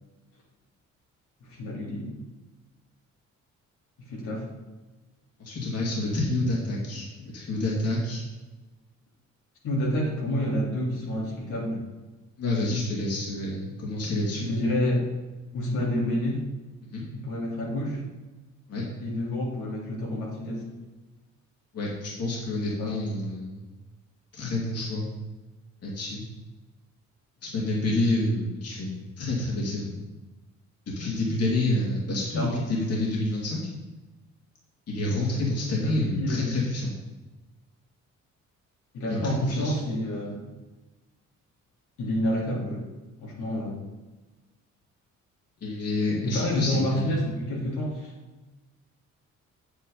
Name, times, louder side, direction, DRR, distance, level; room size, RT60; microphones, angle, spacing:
voice 1, 1.4-2.2 4.0-4.4 9.6-11.8 14.3-15.1 15.5-16.4 17.1-18.0 19.0-20.6 22.8-22.9 32.3-32.6 35.8-36.4 38.9-40.4 42.0-42.8 43.2-43.8 46.2-48.1, left 1 dB, 85° left, -5 dB, 3.3 m, -29 dB
voice 2, 5.4-8.2 12.4-14.5 16.9-17.1 18.7-18.8 21.7-23.6 24.3-25.1 25.8-26.2 27.4-28.9 29.2-30.0 30.9-33.7 34.9-37.0 39.0-39.7 45.6-47.1, left 2 dB, 55° left, -4 dB, 2.6 m, -28 dB
8.4 x 7.8 x 3.9 m, 1.2 s
cardioid pair, 90°, 30 cm